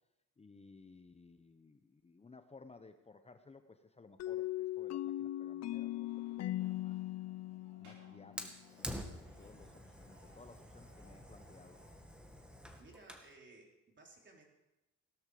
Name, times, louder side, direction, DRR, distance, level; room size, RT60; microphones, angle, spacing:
voice 1, 0.4-7.0 7.8-11.8, left 3 dB, 20° left, 8 dB, 0.9 m, -58 dB
sound 1, 4.2-8.9, left 14 dB, 60° left, 0.6 m, -39 dB
sound 2, 6.0-12.5, right 1 dB, 85° right, 7.6 m, -67 dB
Fire, 8.4-13.3, equal, 5° right, 2.0 m, -48 dB
voice 2, 12.8-14.4, right 3 dB, 40° right, 1 dB, 4.0 m, -59 dB
17.5 x 12.5 x 5.2 m, 0.91 s
cardioid pair, 90°, 30 cm